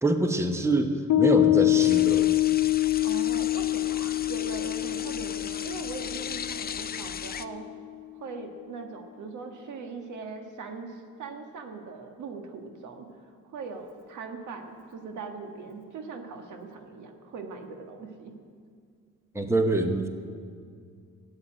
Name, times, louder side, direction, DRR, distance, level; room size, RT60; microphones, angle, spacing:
voice 1, 0.0-2.3 19.3-20.1, right 2 dB, 10° right, 6 dB, 1.1 m, -25 dB
Piano, 1.1-7.9, left 17 dB, 75° left, 0.9 m, -25 dB
sound 1, 1.8-7.5, left 7 dB, 30° left, 0.5 m, -38 dB
voice 2, 3.0-7.6 8.1-18.3, right 4 dB, 80° right, 4 dB, 1.7 m, -40 dB
13.0 x 8.6 x 8.9 m, 2.2 s
cardioid pair, 90°, 30 cm